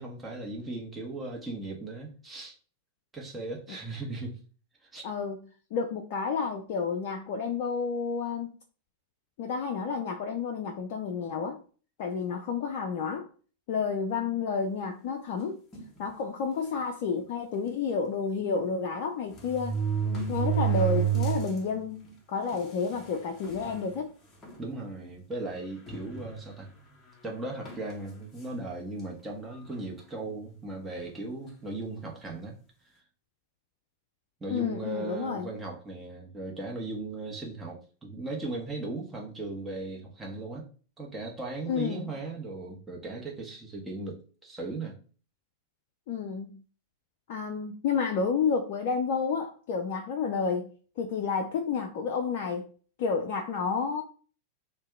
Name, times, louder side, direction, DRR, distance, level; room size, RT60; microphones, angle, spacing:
voice 1, 0.0-2.5 3.1-4.4 4.9-5.0 24.6-26.7 27.2-32.5 34.4-40.7 41.0-45.0, right 2 dB, 15° right, 0.9 m, -37 dB
voice 2, 5.0-5.4 5.7-8.5 9.4-11.6 12.0-13.3 13.7-15.6 16.0-19.8 20.3-22.0 22.3-24.1 34.5-35.5 41.7-42.1 46.1-46.6 47.3-50.7 51.0-52.7 53.0-54.0, left 5 dB, 50° left, 0.4 m, -30 dB
sound 1, 15.7-16.0 16.7-16.8 17.1-17.2 18.6-18.7 19.3-21.6 22.0-22.1 23.0-23.1 23.4-23.8 24.4-24.6 25.9-26.7 27.6-27.9, right 9 dB, 25° left, 1.0 m, -29 dB
2.6 x 2.2 x 3.5 m
figure-of-eight pair, 90°, 0 cm